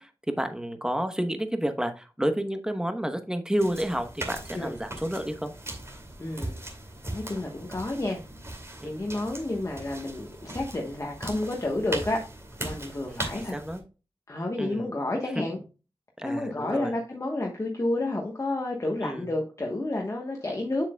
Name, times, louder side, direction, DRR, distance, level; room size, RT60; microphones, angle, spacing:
voice 1, 0.0-5.5 8.8-8.9 13.1-13.8 14.6-14.9 15.3-15.4 16.2-17.0 19.0-19.3, right 1 dB, 5° right, 7 dB, 1.0 m, -30 dB
sound 1, 3.6-13.8, right 1 dB, 30° right, 2.4 m, -39 dB
voice 2, 6.2-6.6 7.1-8.2 8.8-12.2 12.6-13.5 14.3-15.6 16.2-20.9, left 2 dB, 35° left, 0 dB, 1.1 m, -30 dB
7.5 x 7.3 x 2.2 m, 0.33 s
wide cardioid pair, 75°, 10 cm